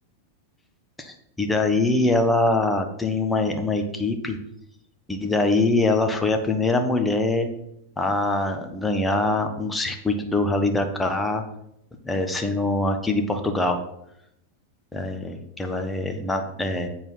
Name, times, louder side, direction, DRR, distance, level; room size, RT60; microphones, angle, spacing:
voice 1, 1.0-4.4 5.1-7.5 8.0-11.4 12.0-13.8 14.9-16.9, left 2 dB, 10° left, 5 dB, 1.2 m, -23 dB
8.2 x 4.6 x 5.6 m, 0.78 s
hypercardioid pair, 100°, 0 cm